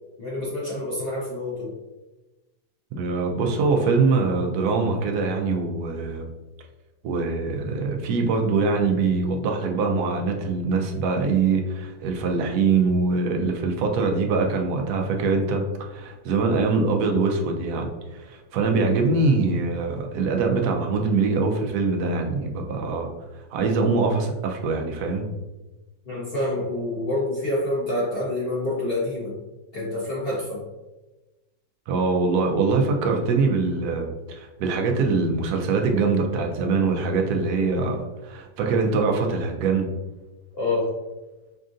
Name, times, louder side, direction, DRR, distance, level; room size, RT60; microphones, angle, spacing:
voice 1, 0.2-1.7 26.1-29.3 29.7-30.6 40.5-40.9, left 1 dB, 65° left, -6 dB, 0.5 m, -27 dB
voice 2, 2.9-6.3 7.0-15.6 15.9-17.9 18.2-23.1 23.5-25.3 31.9-39.9, right 4 dB, 70° right, 2 dB, 1.1 m, -23 dB
5.3 x 2.5 x 2.5 m, 1.1 s
omnidirectional pair, 2.0 m